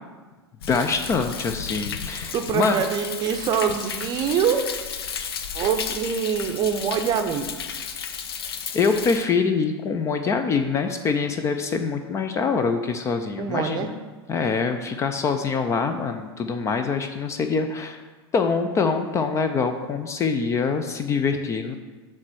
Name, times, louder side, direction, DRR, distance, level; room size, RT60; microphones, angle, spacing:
Thunder, 0.6-9.2, left 7 dB, 65° left, 0.6 m, -33 dB
voice 1, 0.7-2.8 8.7-13.9 14.3-18.0 18.3-21.8, left 5 dB, 20° left, 7 dB, 0.4 m, -24 dB
voice 2, 2.3-4.7 5.5-7.5 13.4-13.9, right 7 dB, 30° right, 7 dB, 0.6 m, -24 dB
7.3 x 3.2 x 6.1 m, 1.3 s
figure-of-eight pair, 90°, 14 cm